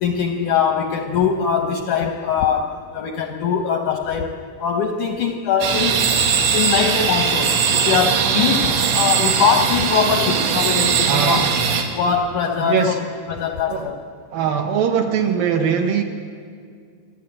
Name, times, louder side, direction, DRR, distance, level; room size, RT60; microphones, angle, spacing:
voice 1, 0.0-4.3 4.6-6.2 6.5-11.4 11.9-13.0 13.3-14.0, left 6 dB, 75° left, 4 dB, 1.8 m, -21 dB
sound 1, 5.6-11.8, right 6 dB, 90° right, 3.9 m, -19 dB
voice 2, 11.1-11.5 12.6-13.0 13.7-13.9 14.3-16.0, right 7 dB, 70° right, 4 dB, 2.3 m, -21 dB
27.0 x 11.5 x 8.8 m, 2.2 s
omnidirectional pair, 4.9 m